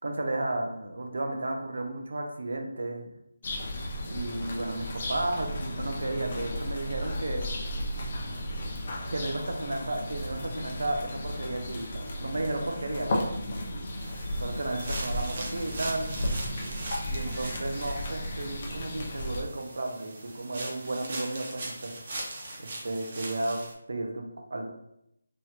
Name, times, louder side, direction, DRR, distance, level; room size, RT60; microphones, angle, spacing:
voice 1, 0.0-3.1 4.1-7.5 9.1-13.2 14.4-16.2 17.0-21.9 22.6-23.6 23.9-24.7, right 2 dB, 75° right, 3 dB, 0.6 m, -33 dB
sound 1, 3.4-19.4, left 1 dB, 40° left, 0.6 m, -34 dB
sound 2, 14.0-23.7, right 2 dB, 45° right, 0.7 m, -41 dB
3.0 x 2.8 x 2.4 m, 0.80 s
figure-of-eight pair, 165°, 0 cm